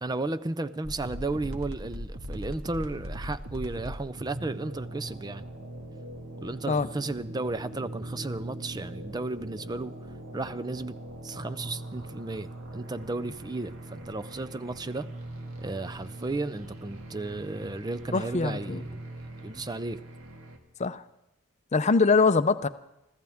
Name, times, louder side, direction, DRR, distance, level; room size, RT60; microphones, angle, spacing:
voice 1, 0.0-5.4 6.4-10.0 10.3-11.0 11.2-15.1 15.6-19.0 19.4-20.0, right 2 dB, 20° right, 0.5 m, -34 dB
sound 1, 0.8-20.6, right 1 dB, 70° right, 1.9 m, -41 dB
voice 2, 18.1-18.8 20.8-21.0 21.7-22.7, left 4 dB, 35° left, 0.6 m, -23 dB
25.5 x 14.5 x 3.5 m
head